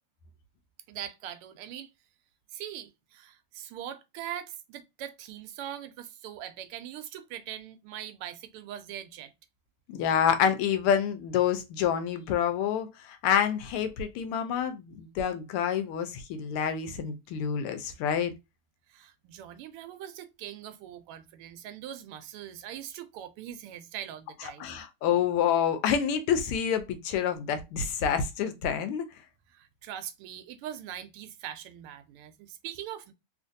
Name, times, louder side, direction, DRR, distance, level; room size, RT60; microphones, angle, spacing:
voice 1, 0.9-1.9 2.5-9.3 18.9-24.8 29.5-33.1, right 11 dB, 85° right, 1.5 m, -41 dB
voice 2, 9.9-18.3 24.6-29.0, left 8 dB, 85° left, 1.5 m, -27 dB
3.7 x 2.5 x 2.6 m
omnidirectional pair, 2.4 m